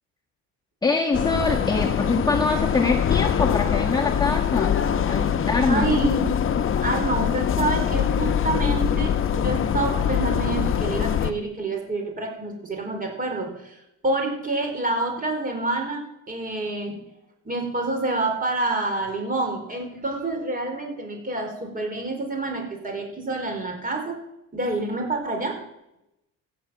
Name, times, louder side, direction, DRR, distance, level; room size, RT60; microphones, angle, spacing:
voice 1, 0.8-4.8 5.1-5.9, left 3 dB, 10° left, -1 dB, 1.4 m, -24 dB
sound 1, 1.1-11.3, left 8 dB, 40° left, 1.0 m, -23 dB
voice 2, 5.4-6.4 6.8-17.0 17.4-24.2 24.5-25.6, right 2 dB, 25° right, 3 dB, 4.5 m, -28 dB
15.5 x 7.4 x 7.8 m, 0.85 s
cardioid pair, 115°, 34 cm